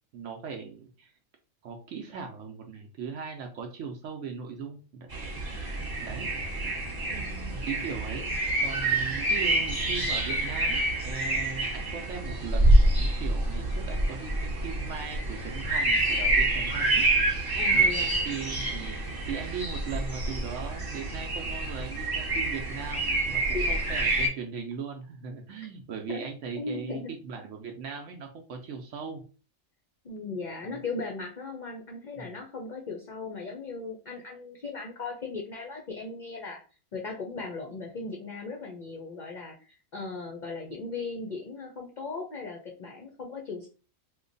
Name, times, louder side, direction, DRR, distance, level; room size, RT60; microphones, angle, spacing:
voice 1, 0.1-1.1 1.6-5.1 6.0-6.3 7.5-17.0 17.7-17.9 18.2-19.0 19.3-29.2 30.6-30.7 32.1-32.2, right 6 dB, 70° right, 3 dB, 0.9 m, -39 dB
sound 1, 5.1-24.3, right 2 dB, 20° right, 0.9 m, -27 dB
voice 2, 7.1-7.6 8.1-8.3 17.6-18.3 23.5-23.9 26.1-26.2 26.5-27.1 30.0-36.6 36.9-43.7, left 3 dB, 55° left, 1 dB, 0.5 m, -38 dB
3.0 x 2.2 x 3.8 m, 0.36 s
omnidirectional pair, 1.4 m